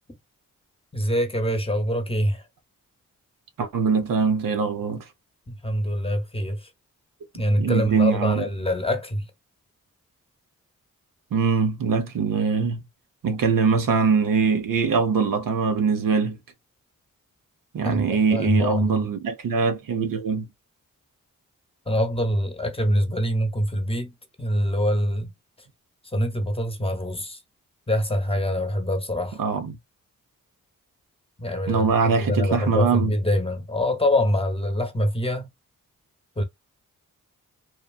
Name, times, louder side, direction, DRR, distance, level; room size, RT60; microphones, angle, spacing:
voice 1, 0.9-2.4 5.5-6.7 7.3-9.3 17.8-19.1 21.9-24.1 24.4-25.3 26.0-27.4 27.9-29.4 31.4-35.5 36.4-36.5, equal, 15° left, 1.0 m, -25 dB
voice 2, 3.6-5.0 7.6-8.4 11.3-12.8 13.2-16.4 17.7-20.5 29.4-29.7 31.7-33.1, right 5 dB, 75° right, 0.8 m, -22 dB
2.9 x 2.3 x 2.3 m
cardioid pair, 45°, 34 cm